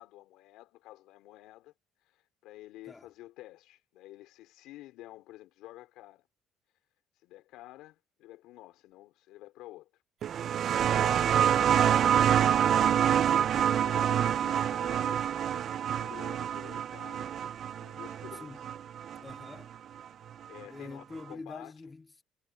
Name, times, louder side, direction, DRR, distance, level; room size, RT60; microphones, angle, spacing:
voice 1, 0.0-1.7 2.0-6.3 7.2-9.9 10.8-12.7 13.2-17.3 17.8-18.5 19.1-19.3 20.5-21.7, left 16 dB, 80° left, 4.3 m, -50 dB
sound 1, 10.2-19.5 20.6-20.7, right 9 dB, 50° right, 0.4 m, -26 dB
voice 2, 11.8-12.2 18.4-18.7 19.2-19.7 20.6-22.2, left 3 dB, 15° left, 2.4 m, -45 dB
cardioid pair, 125°, 0 cm